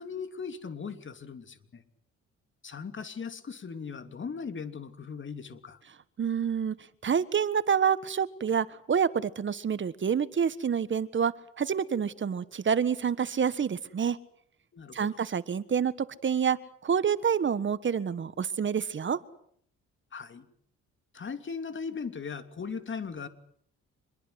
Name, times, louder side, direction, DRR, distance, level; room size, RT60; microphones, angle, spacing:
voice 1, 0.0-1.8 2.6-5.8 14.7-15.1 20.1-20.5 21.1-23.3, left 5 dB, 40° left, 10 dB, 2.9 m, -38 dB
voice 2, 6.2-6.7 7.0-14.2 14.9-16.6 16.8-19.2, right 7 dB, 40° right, 15 dB, 1.5 m, -28 dB
26.0 x 21.5 x 8.1 m, 0.66 s
cardioid pair, 100°, 30 cm